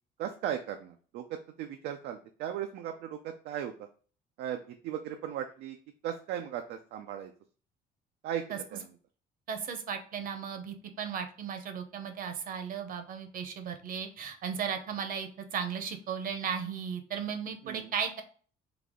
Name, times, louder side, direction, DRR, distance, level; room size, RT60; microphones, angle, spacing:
voice 1, 0.2-3.7 4.4-5.8 6.0-7.3 8.2-8.9 17.6-17.9, right 10 dB, 80° right, 6 dB, 0.4 m, -37 dB
voice 2, 9.5-18.2, right 7 dB, 55° right, 7 dB, 0.8 m, -36 dB
4.0 x 2.8 x 3.6 m, 0.42 s
cardioid pair, 110°, 17 cm